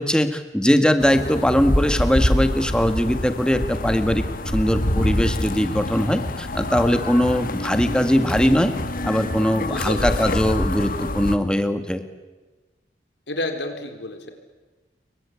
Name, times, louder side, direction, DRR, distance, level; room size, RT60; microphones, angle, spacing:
voice 1, 0.0-4.3 4.5-8.7 9.0-12.0, equal, 5° left, 9 dB, 1.8 m, -20 dB
sound 1, 1.0-11.4, left 1 dB, 50° left, 1.7 m, -26 dB
voice 2, 9.6-10.3 13.3-14.3, left 1 dB, 85° left, 6 dB, 4.3 m, -30 dB
29.0 x 23.0 x 8.6 m, 1.2 s
head